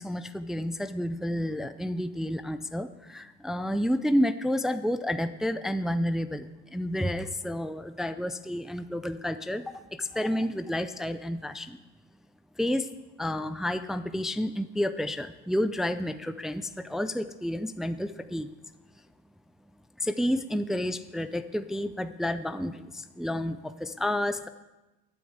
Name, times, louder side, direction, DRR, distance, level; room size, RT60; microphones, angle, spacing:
voice 1, 0.0-11.8 12.6-12.9 13.2-18.5 20.0-24.5, left 1 dB, ahead, 10 dB, 0.5 m, -30 dB
11.5 x 9.7 x 7.9 m, 1.1 s
cardioid pair, 125°, 30 cm